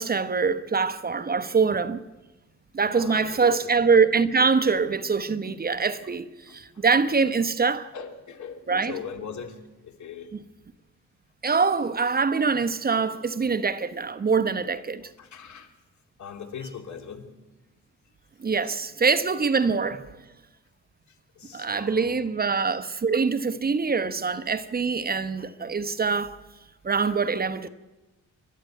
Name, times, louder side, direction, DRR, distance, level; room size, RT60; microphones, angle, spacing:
voice 1, 0.0-2.0 2.7-7.9 8.7-8.9 11.4-15.0 18.4-20.2 21.5-26.4 26.8-27.7, right 5 dB, 30° right, 1.0 m, -24 dB
voice 2, 2.8-3.7 5.4-5.6 6.5-6.8 7.9-10.3 12.9-13.1 15.2-15.7 16.2-17.3 18.6-18.7 21.3-22.3 24.0-24.1 27.0-27.2, left 6 dB, 70° left, 2.9 m, -40 dB
28.5 x 12.5 x 9.1 m
cardioid pair, 115°, 30 cm